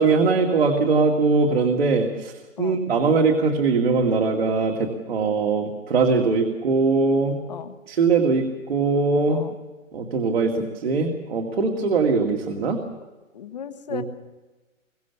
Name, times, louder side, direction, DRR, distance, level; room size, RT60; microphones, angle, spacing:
voice 1, 0.0-2.3 2.6-7.4 7.9-9.4 9.9-12.8 13.9-14.0, right 4 dB, 50° right, 1 dB, 2.4 m, -21 dB
voice 2, 13.3-14.0, left 8 dB, 30° left, 9 dB, 1.3 m, -35 dB
24.0 x 23.5 x 7.1 m, 1.2 s
hypercardioid pair, 170°, 39 cm